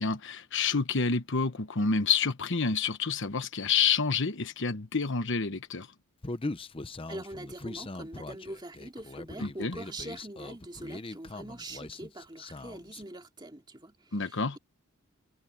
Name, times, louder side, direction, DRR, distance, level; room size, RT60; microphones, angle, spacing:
voice 1, 0.0-5.9 9.4-9.8 14.1-14.6, left 5 dB, 55° left, 1.2 m, -28 dB
Human voice, 6.2-13.0, left 2 dB, 25° left, 0.7 m, -41 dB
voice 2, 7.1-14.6, right 1 dB, 20° right, 2.4 m, -43 dB
head